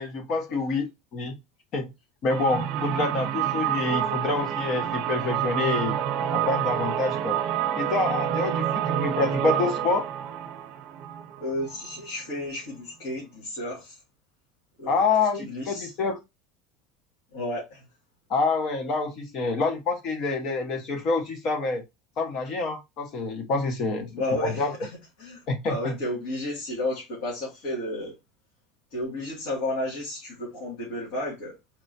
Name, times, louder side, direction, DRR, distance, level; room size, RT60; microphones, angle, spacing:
voice 1, 0.0-1.4 1.7-1.9 2.2-6.0 6.3-7.4 7.8-10.1 14.9-16.2 18.3-21.8 22.2-24.1 24.4-24.7 25.5-26.0, left 3 dB, 40° left, 0.9 m, -27 dB
sound 1, 2.3-12.0, right 10 dB, 55° right, 0.8 m, -28 dB
voice 2, 11.4-14.0 14.8-15.0 15.3-15.9 17.3-17.8 24.1-24.9 25.2-28.1 28.9-31.6, left 1 dB, 70° left, 2.4 m, -32 dB
4.3 x 3.3 x 2.8 m
cardioid pair, 155°, 0 cm